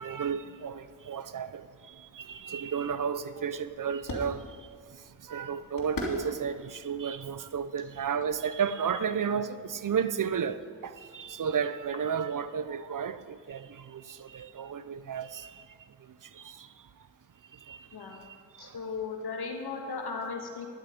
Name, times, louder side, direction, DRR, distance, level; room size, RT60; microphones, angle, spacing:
voice 1, 0.0-4.4 5.3-10.6 10.8-15.5 16.4-16.7 17.7-17.8, right 7 dB, 55° right, 13 dB, 0.7 m, -32 dB
sound 1, 1.9-8.2, left 1 dB, 55° left, 2.8 m, -43 dB
voice 2, 18.6-20.7, left 4 dB, 80° left, 3 dB, 1.6 m, -36 dB
12.0 x 9.3 x 5.2 m, 2.1 s
cardioid pair, 45°, 38 cm